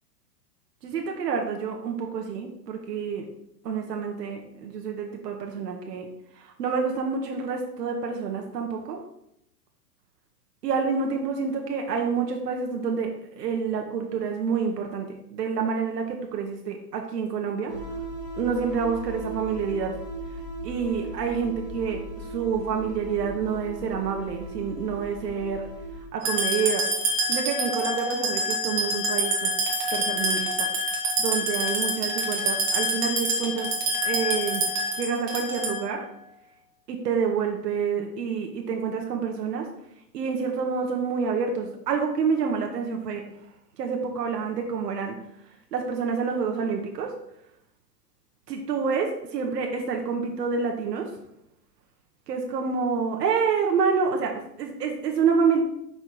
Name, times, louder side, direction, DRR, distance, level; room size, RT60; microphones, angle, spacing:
voice 1, 0.8-3.2 3.6-6.1 6.4-9.0 10.6-17.7 18.4-20.0 20.6-25.7 26.1-26.9 27.3-29.5 29.9-30.7 31.2-33.7 34.0-34.7 35.0-36.0 36.9-39.7 40.1-43.2 43.8-45.2 45.7-47.1 48.5-51.1 52.3-55.6, right 6 dB, 70° right, 2 dB, 1.1 m, -28 dB
sound 1, 17.7-26.1, right 2 dB, 30° left, 0.4 m, -37 dB
sound 2, 26.2-35.9, right 1 dB, 20° right, 0.7 m, -26 dB
5.6 x 4.2 x 4.6 m, 0.77 s
hypercardioid pair, 170°, 49 cm